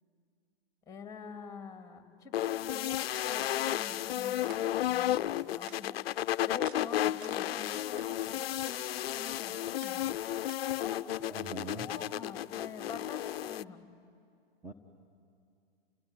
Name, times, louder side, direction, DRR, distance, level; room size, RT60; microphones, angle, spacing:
voice 1, 0.9-6.2 6.5-10.0 10.8-13.9, left 5 dB, 10° left, 5 dB, 2.3 m, -46 dB
sound 1, 2.3-13.6, left 13 dB, 75° left, 0.5 m, -33 dB
sound 2, 3.7-4.0 4.3-4.9 5.3-6.2 6.6-6.8 7.1-8.1 8.5-8.8 9.1-11.0, right 8 dB, 55° right, 1.1 m, -55 dB
voice 2, 11.2-11.9 14.6-14.7, right 2 dB, 5° right, 4 dB, 1.2 m, -42 dB
30.0 x 17.5 x 9.6 m, 2.4 s
hypercardioid pair, 125°, 30 cm